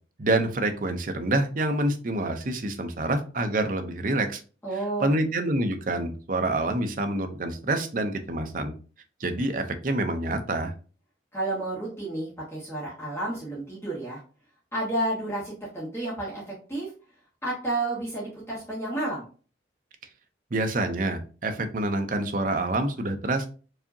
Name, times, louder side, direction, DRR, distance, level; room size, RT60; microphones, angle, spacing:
voice 1, 0.2-4.4 5.0-8.7 9.2-10.7 20.5-23.5, right 2 dB, 45° right, 6 dB, 0.6 m, -27 dB
voice 2, 4.6-5.1 11.3-14.2 14.7-16.4 16.7-16.9 17.4-19.3, right 2 dB, 15° left, -7 dB, 1.3 m, -31 dB
4.7 x 2.8 x 2.7 m, 0.37 s
head